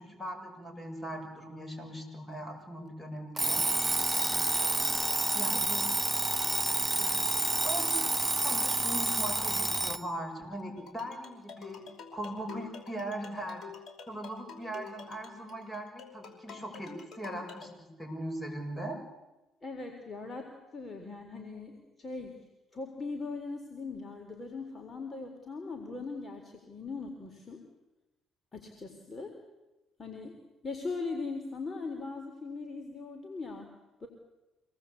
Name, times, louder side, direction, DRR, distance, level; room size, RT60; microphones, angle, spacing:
voice 1, 0.0-3.6 5.3-5.9 7.0-7.1 7.6-11.9 12.1-13.7 14.1-19.0, right 1 dB, 10° left, 3 dB, 7.3 m, -40 dB
Alarm, 3.4-10.1, right 2 dB, 15° right, 1.0 m, -29 dB
sound 1, 10.8-17.7, left 6 dB, 45° left, 5.1 m, -48 dB
voice 2, 19.6-22.4 22.7-27.6 28.5-29.3 30.0-30.4 30.6-34.1, left 3 dB, 25° left, 3 dB, 3.9 m, -40 dB
26.0 x 19.0 x 8.5 m, 1.0 s
supercardioid pair, 80°, 0 cm